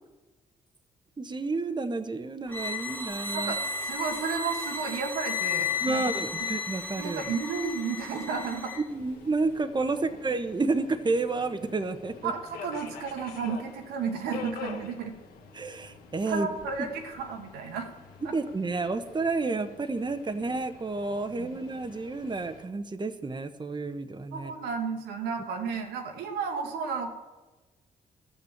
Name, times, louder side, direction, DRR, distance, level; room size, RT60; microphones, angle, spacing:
voice 1, 1.2-3.5 5.8-7.2 8.9-12.3 15.5-16.5 16.8-16.9 18.3-24.5, right 3 dB, 30° right, 9 dB, 1.1 m, -30 dB
sound 1, 2.5-8.8, left 5 dB, 10° left, 1.8 m, -33 dB
voice 2, 3.8-6.0 7.0-8.7 12.2-15.1 16.3-17.9 18.2-18.3 21.4-21.6 24.3-27.1, right 5 dB, 85° right, 4 dB, 1.4 m, -32 dB
Subway metro underground, 8.9-22.6, left 5 dB, 85° left, 1.5 m, -47 dB
13.5 x 7.0 x 7.3 m, 1.2 s
supercardioid pair, 55°, 16 cm